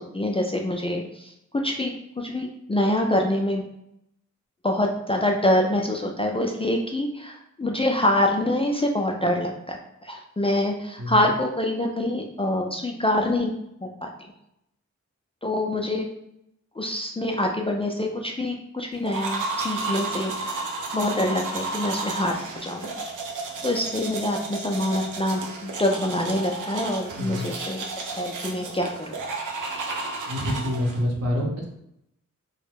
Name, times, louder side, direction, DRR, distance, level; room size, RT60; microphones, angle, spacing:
voice 1, 0.0-3.6 4.6-13.5 13.8-14.1 15.4-16.1 16.8-20.7 20.9-22.4 22.6-23.1 23.4-27.8 28.1-29.2, left 1 dB, 20° left, 1 dB, 0.3 m, -25 dB
sound 1, 19.0-31.0, right 3 dB, 90° right, 0.5 m, -32 dB
voice 2, 27.2-27.5 30.3-31.7, left 1 dB, 55° right, -1 dB, 0.8 m, -27 dB
2.2 x 2.1 x 3.3 m, 0.79 s
cardioid pair, 45°, 30 cm